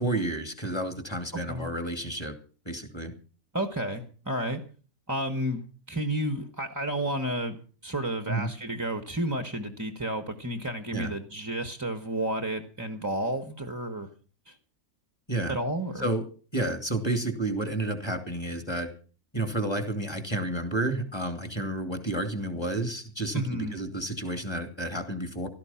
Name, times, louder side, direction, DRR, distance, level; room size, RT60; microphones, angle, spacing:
voice 1, 0.0-2.3 2.7-3.1 8.3-8.5 10.9-11.1 15.3-15.6 16.0-16.2 16.5-18.9 19.3-25.5, right 1 dB, 15° left, 7 dB, 2.6 m, -30 dB
voice 2, 3.5-4.6 5.1-5.6 5.9-7.6 7.8-14.1 14.5-14.6 15.5-16.0 23.3-23.8, right 1 dB, 15° right, 8 dB, 1.3 m, -31 dB
16.5 x 13.5 x 5.8 m, 0.40 s
omnidirectional pair, 1.5 m